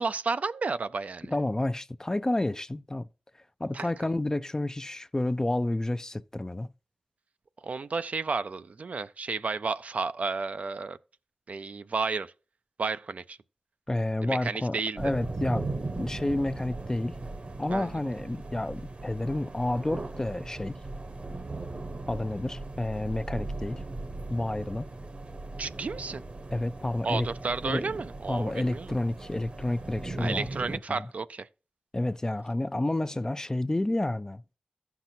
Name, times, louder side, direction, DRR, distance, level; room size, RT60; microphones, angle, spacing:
voice 1, 0.0-1.3 3.7-3.9 7.6-11.0 11.5-12.3 12.8-13.4 14.2-15.0 17.7-17.9 25.6-26.2 27.0-28.9 30.2-31.5, right 4 dB, 65° right, 0.4 m, -32 dB
voice 2, 1.3-3.1 3.6-6.7 13.9-15.7 16.0-17.1 17.6-20.8 22.1-23.8 24.3-24.9 26.5-27.3 27.6-27.9 28.3-31.1 31.9-34.4, left 1 dB, 25° left, 0.4 m, -30 dB
sound 1, 15.0-30.8, right 2 dB, 50° right, 0.9 m, -38 dB
15.0 x 5.9 x 2.7 m
cardioid pair, 55°, 3 cm